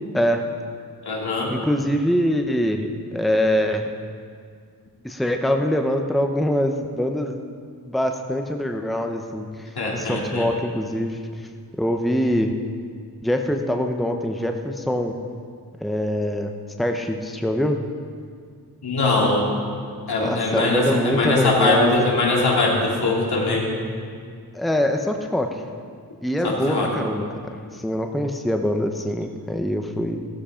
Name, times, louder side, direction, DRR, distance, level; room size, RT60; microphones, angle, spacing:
voice 1, 0.1-0.4 1.5-3.9 5.0-7.4 7.9-9.7 9.9-11.5 11.8-12.5 13.2-15.1 15.8-16.5 16.8-17.8 20.2-22.0 24.5-25.6 26.2-30.2, equal, ahead, 4 dB, 0.8 m, -24 dB
voice 2, 1.0-1.5 9.7-10.5 18.8-19.5 20.1-23.7 26.4-26.9, left 2 dB, 80° left, -2 dB, 3.2 m, -21 dB
17.0 x 13.0 x 5.1 m, 2.2 s
wide cardioid pair, 115°, 38 cm